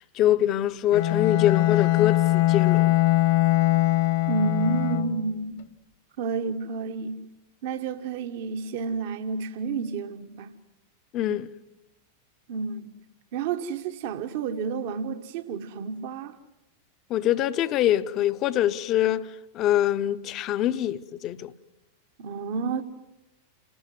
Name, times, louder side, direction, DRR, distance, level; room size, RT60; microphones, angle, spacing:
voice 1, 0.0-2.9 11.1-11.5 17.1-21.5, left 12 dB, 35° left, 1.0 m, -24 dB
Bowed string instrument, 0.9-5.3, left 16 dB, 55° left, 1.5 m, -22 dB
voice 2, 4.3-5.6 6.2-7.2 7.6-10.5 12.5-13.0 13.3-16.4 22.2-22.8, right 5 dB, 50° right, 1.4 m, -30 dB
28.5 x 20.0 x 9.6 m
figure-of-eight pair, 90°, 0 cm